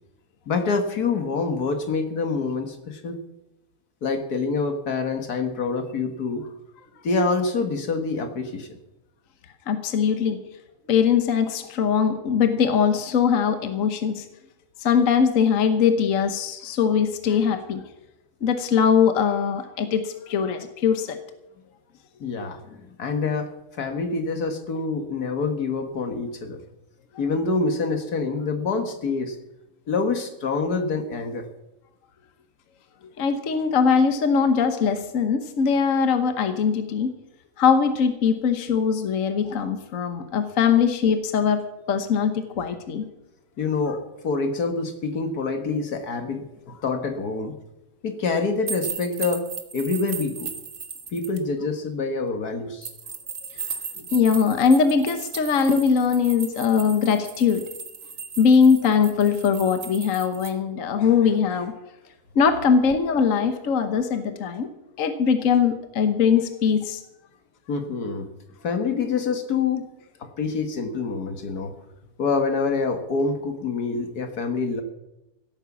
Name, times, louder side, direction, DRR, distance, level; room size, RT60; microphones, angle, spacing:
voice 1, 0.5-3.2 4.0-6.4 7.0-8.8 22.2-26.6 27.2-29.4 29.9-31.5 43.6-47.6 48.0-49.5 49.7-50.5 51.1-52.9 67.7-68.3 68.6-69.8 70.4-71.7 72.2-74.8, left 4 dB, 80° left, 6 dB, 2.1 m, -26 dB
voice 2, 9.7-10.4 10.9-14.2 14.8-17.8 18.4-21.2 33.2-37.1 37.6-43.0 54.1-57.6 58.4-61.7 62.3-64.7 65.0-67.0, left 6 dB, 60° left, 8 dB, 1.4 m, -21 dB
sound 1, 48.7-51.4 52.8-60.5, right 5 dB, 55° right, 1.7 m, -36 dB
16.0 x 9.0 x 7.2 m, 0.94 s
omnidirectional pair, 1.6 m